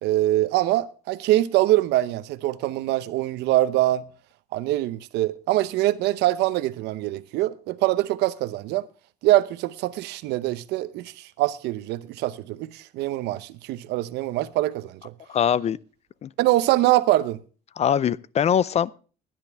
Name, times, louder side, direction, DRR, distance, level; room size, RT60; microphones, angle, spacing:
voice 1, 0.0-4.0 4.5-8.8 9.2-15.1 16.4-17.4, right 16 dB, 85° right, 0.7 m, -23 dB
voice 2, 15.3-15.8 16.2-16.3 17.8-18.9, left 8 dB, 40° left, 0.5 m, -22 dB
16.0 x 10.5 x 3.4 m
cardioid pair, 110°, 17 cm